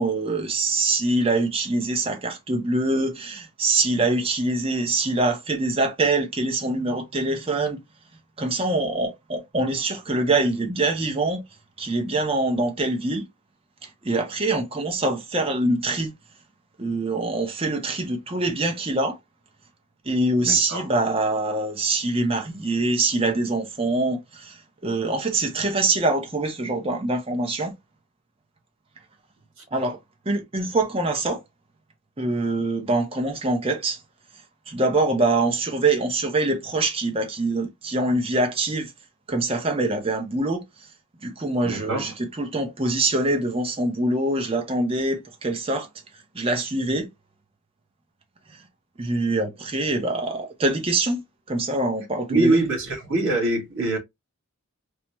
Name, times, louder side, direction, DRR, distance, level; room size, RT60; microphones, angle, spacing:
voice 1, 0.0-7.8 8.4-11.4 11.8-13.3 13.8-16.1 16.8-19.2 20.0-27.7 29.7-30.0 30.3-31.4 32.2-34.0 34.7-38.9 39.3-40.6 41.2-45.9 46.3-47.1 48.5-48.6 49.0-51.2 51.5-52.6, right 2 dB, 25° right, 0.7 m, -24 dB
voice 2, 20.4-20.8 41.6-42.1 52.3-54.0, right 2 dB, 70° right, 2.1 m, -24 dB
4.7 x 2.1 x 3.0 m
head